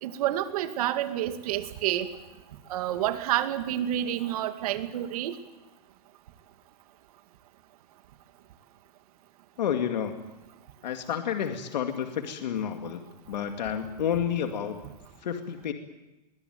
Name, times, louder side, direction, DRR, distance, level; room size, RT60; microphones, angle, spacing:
voice 1, 0.0-2.1 2.7-5.3, right 12 dB, 60° right, 8 dB, 2.3 m, -29 dB
voice 2, 9.6-10.2 10.8-13.0 13.3-14.8 15.2-15.7, left 8 dB, 90° left, 5 dB, 2.3 m, -30 dB
23.0 x 19.5 x 9.4 m, 1.1 s
supercardioid pair, 150°, 21 cm